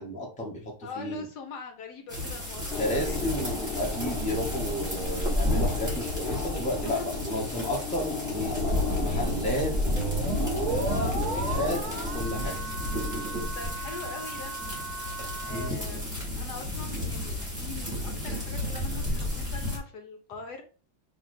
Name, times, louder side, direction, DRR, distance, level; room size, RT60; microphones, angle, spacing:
voice 1, 0.0-1.2 2.8-8.5 9.0-12.6 15.5-15.8, equal, 5° left, -2 dB, 0.8 m, -33 dB
voice 2, 0.8-3.9 6.8-6.9 10.8-11.2 13.5-14.5 15.4-20.6, left 4 dB, 70° left, 5 dB, 1.2 m, -42 dB
sound 1, 2.1-19.8, left 1 dB, 10° right, 1.5 m, -32 dB
sound 2, 2.7-12.2, left 4 dB, 45° left, 0.8 m, -36 dB
sound 3, 10.0-15.7, right 4 dB, 60° right, 0.8 m, -35 dB
3.2 x 2.8 x 4.2 m, 0.37 s
omnidirectional pair, 2.0 m